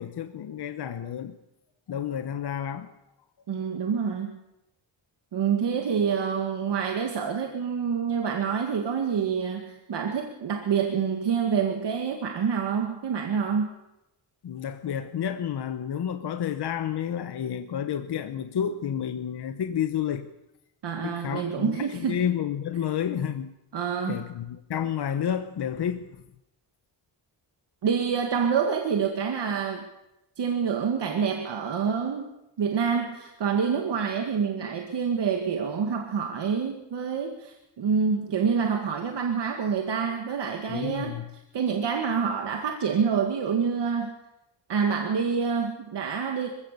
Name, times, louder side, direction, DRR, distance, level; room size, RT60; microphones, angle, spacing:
voice 1, 0.0-1.4 1.9-2.9 14.4-20.3 21.0-23.5 24.1-26.2 40.7-41.2, left 9 dB, 55° left, 8 dB, 1.2 m, -30 dB
voice 2, 3.5-4.4 5.3-13.7 20.8-22.2 23.7-24.3 27.8-29.8 30.4-32.3 32.6-41.2 41.5-44.1 44.7-46.5, right 6 dB, 60° right, 3 dB, 2.2 m, -27 dB
25.5 x 16.0 x 6.9 m, 0.89 s
wide cardioid pair, 160°, 47 cm